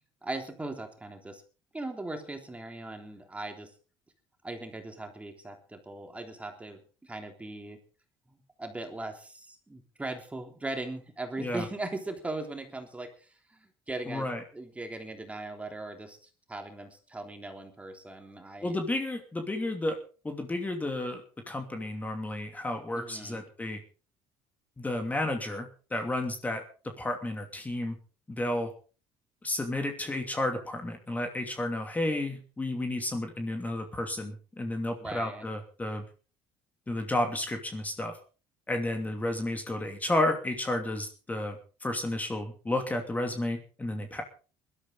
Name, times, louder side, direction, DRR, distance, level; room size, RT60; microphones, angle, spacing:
voice 1, 0.2-1.4 1.7-3.7 4.4-7.8 8.3-18.8 22.9-23.5 35.0-35.5, right 2 dB, 15° right, 4 dB, 3.4 m, -39 dB
voice 2, 14.1-14.4 18.6-20.0 20.2-23.8 24.8-28.0 28.3-28.7 29.4-36.0 36.9-38.2 38.7-44.2, left 1 dB, 15° left, 4 dB, 2.8 m, -32 dB
20.5 x 13.0 x 4.0 m, 0.36 s
supercardioid pair, 95°, 10 cm